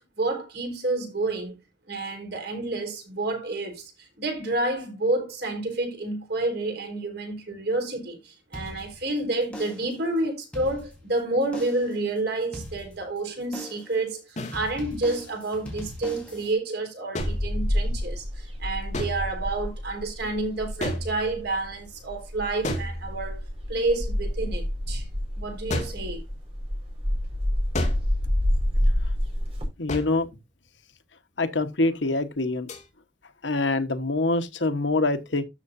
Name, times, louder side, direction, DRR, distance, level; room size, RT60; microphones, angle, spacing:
voice 1, 0.2-1.6 1.9-23.4 23.7-25.0 25.4-26.2, right 2 dB, 65° right, 4.2 m, -29 dB
sound 1, 8.5-9.2 9.5-10.0 10.4-11.2 11.5-12.0 12.5-13.2 13.5-14.0 14.5-16.5, equal, 5° left, 3.8 m, -39 dB
sound 2, 14.4-14.6 17.1-18.0 18.9-19.5 20.8-21.6 22.6-23.5 25.7-26.1 27.7-28.3 29.9-30.3 32.7-32.9, left 1 dB, 40° left, 2.4 m, -32 dB
sound 3, 17.2-29.7, equal, 35° right, 4.7 m, -29 dB
voice 2, 29.8-30.3 31.4-32.7 33.4-35.4, left 2 dB, 85° left, 1.2 m, -25 dB
12.5 x 6.8 x 2.6 m
head